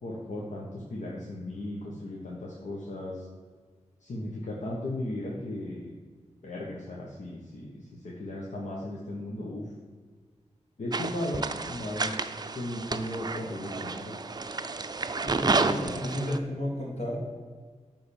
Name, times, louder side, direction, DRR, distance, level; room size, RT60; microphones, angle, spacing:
voice 1, 0.0-3.3 4.0-5.9 6.4-9.7 10.8-12.3 12.5-14.2 15.4-16.0, left 1 dB, 75° left, -4 dB, 1.4 m, -36 dB
sound 1, 10.9-16.4, right 3 dB, 35° right, 0.5 m, -31 dB
voice 2, 15.2-17.2, left 1 dB, 60° left, -2 dB, 2.6 m, -33 dB
9.9 x 3.9 x 7.1 m, 1.6 s
wide cardioid pair, 95°, 12 cm